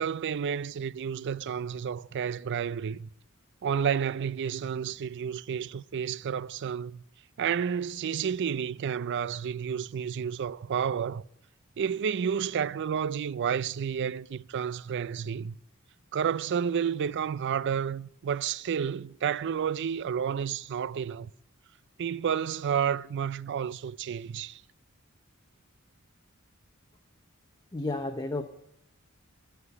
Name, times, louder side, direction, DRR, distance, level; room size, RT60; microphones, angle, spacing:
voice 1, 0.0-3.1 3.6-7.0 7.4-11.2 11.8-15.6 16.1-21.3 22.0-24.6, right 7 dB, 55° right, 0.4 m, -30 dB
voice 2, 27.7-28.4, left 2 dB, 20° left, 0.8 m, -31 dB
14.0 x 5.8 x 9.6 m
head